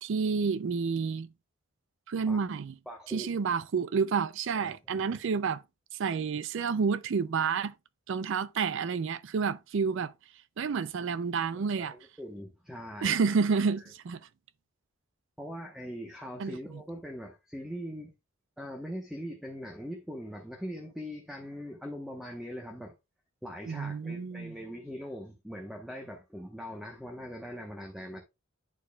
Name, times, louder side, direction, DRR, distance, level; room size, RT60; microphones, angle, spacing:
voice 1, 0.0-1.3 2.1-2.8 3.1-5.6 6.0-7.7 8.1-10.1 10.6-11.9 13.0-14.2 16.4-16.6 23.7-24.5, right 5 dB, 60° right, 0.4 m, -29 dB
voice 2, 2.9-3.4 4.6-4.7 5.1-5.2 11.5-13.2 15.4-18.1 18.6-22.9 23.4-28.2, equal, ahead, 0.9 m, -41 dB
10.5 x 4.5 x 2.3 m
head